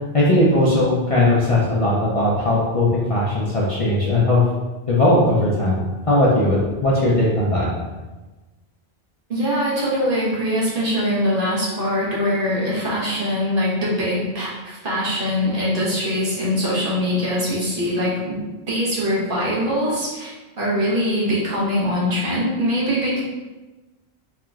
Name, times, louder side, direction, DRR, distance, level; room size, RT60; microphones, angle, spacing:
voice 1, 0.1-4.4 4.9-7.7, left 1 dB, 40° left, -6 dB, 0.5 m, -18 dB
voice 2, 9.3-18.4 18.7-23.2, equal, 55° right, -7 dB, 1.2 m, -22 dB
4.3 x 2.9 x 2.3 m, 1.2 s
omnidirectional pair, 1.1 m